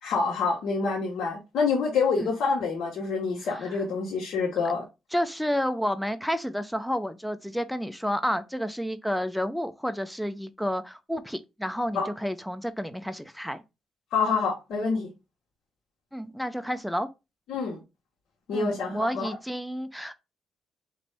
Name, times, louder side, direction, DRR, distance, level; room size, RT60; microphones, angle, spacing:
voice 1, 0.0-4.8 11.9-12.1 14.1-15.1 17.5-17.8 18.5-19.3, left 4 dB, 75° left, 1.1 m, -27 dB
voice 2, 5.1-13.6 16.1-17.1 18.5-20.1, equal, ahead, 0.4 m, -30 dB
4.0 x 2.6 x 3.3 m
cardioid pair, 90°, 0 cm